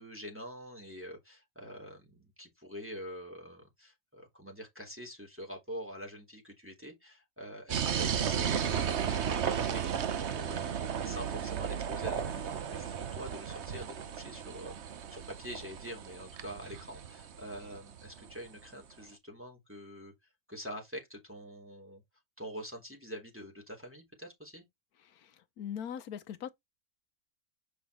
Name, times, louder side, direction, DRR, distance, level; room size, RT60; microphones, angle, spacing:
voice 1, 0.0-20.1 20.5-22.0 22.4-24.6, equal, 10° right, 3.3 m, -46 dB
sound 1, 7.7-18.4, right 8 dB, 55° right, 1.0 m, -34 dB
voice 2, 25.0-26.5, left 8 dB, 75° left, 1.3 m, -41 dB
6.8 x 5.5 x 3.1 m
omnidirectional pair, 1.6 m